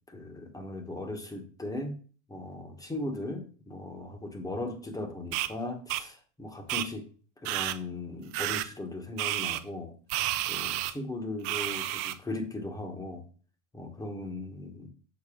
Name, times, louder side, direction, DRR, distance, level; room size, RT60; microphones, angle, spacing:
voice 1, 0.1-2.0 2.3-7.1 7.4-9.9 10.5-13.2 13.7-14.9, left 2 dB, 10° left, 6 dB, 1.0 m, -38 dB
sound 1, 5.3-5.5 5.9-6.0 6.7-6.9 7.4-7.8 8.3-8.7 9.2-9.6 10.1-10.9 11.4-12.1, right 15 dB, 55° right, 0.5 m, -30 dB
6.9 x 4.1 x 3.6 m, 0.41 s
hypercardioid pair, 110°, 38 cm